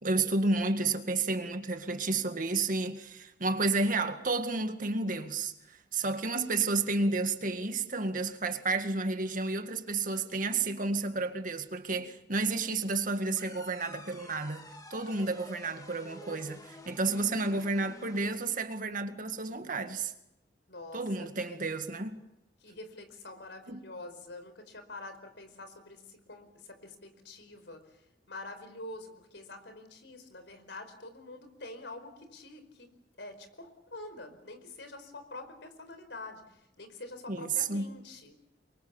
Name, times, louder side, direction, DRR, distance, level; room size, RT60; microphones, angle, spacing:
voice 1, 0.0-20.1 20.9-22.2 23.7-23.8 37.3-37.9, right 3 dB, 50° right, 1.9 m, -31 dB
sound 1, 13.4-18.4, left 2 dB, 20° left, 2.2 m, -50 dB
voice 2, 20.7-21.6 22.6-32.9 33.2-38.4, left 2 dB, 70° left, 4.9 m, -46 dB
28.5 x 23.5 x 7.2 m
head